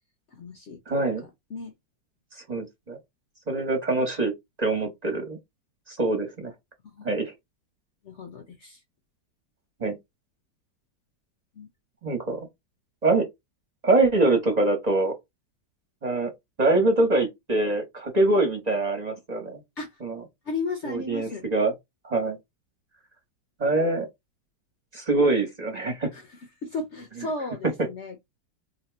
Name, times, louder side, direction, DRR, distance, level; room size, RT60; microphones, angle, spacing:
voice 1, 0.3-1.1 1.5-1.7 4.8-4.9 6.8-7.1 8.0-8.8 11.5-11.7 19.8-20.0 20.4-21.4 26.1-28.2, left 3 dB, 60° left, 0.7 m, -35 dB
voice 2, 0.9-1.2 2.5-3.0 3.5-4.3 4.6-5.4 5.9-6.5 7.0-7.3 9.8-10.0 12.0-12.5 13.0-13.3 13.8-15.1 16.0-16.3 16.6-19.6 20.0-20.2 20.8-21.7 22.0-22.4 23.6-24.1 24.9-26.1, right 2 dB, 40° right, 0.6 m, -24 dB
2.8 x 2.7 x 4.3 m
omnidirectional pair, 1.9 m